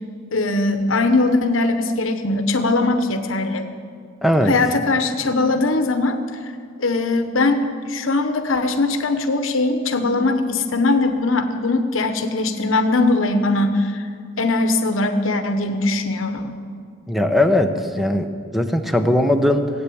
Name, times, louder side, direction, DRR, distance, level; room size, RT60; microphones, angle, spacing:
voice 1, 0.3-3.7 4.5-6.5 6.8-14.1 14.4-16.6, left 2 dB, 75° left, 7 dB, 0.9 m, -20 dB
voice 2, 4.2-4.5 17.1-18.3 18.5-19.7, left 1 dB, ahead, 7 dB, 0.8 m, -18 dB
17.0 x 8.3 x 8.5 m, 2.2 s
head